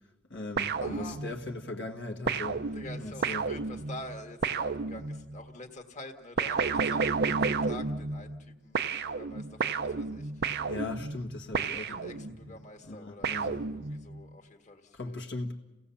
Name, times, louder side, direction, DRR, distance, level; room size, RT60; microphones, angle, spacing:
voice 1, 0.3-3.5 10.7-12.6 12.9-13.6 14.9-15.5, left 2 dB, 60° left, 1.7 m, -39 dB
sound 1, 0.6-1.6 2.3-5.4 6.4-8.5 8.7-12.5 13.2-14.2, right 5 dB, 55° right, 0.7 m, -32 dB
voice 2, 0.8-1.2 2.7-10.5 11.7-15.2, left 1 dB, 35° left, 1.8 m, -47 dB
30.0 x 17.0 x 7.1 m
head